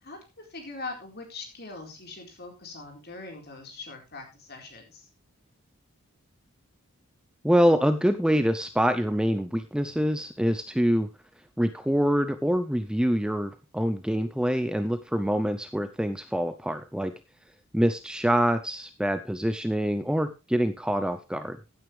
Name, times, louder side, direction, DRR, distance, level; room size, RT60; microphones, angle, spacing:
voice 1, 0.0-5.1, left 3 dB, 45° left, 3 dB, 4.2 m, -42 dB
voice 2, 7.4-11.1 11.6-17.1 17.7-21.6, equal, 5° right, 10 dB, 0.6 m, -25 dB
15.5 x 9.4 x 3.3 m, 0.28 s
head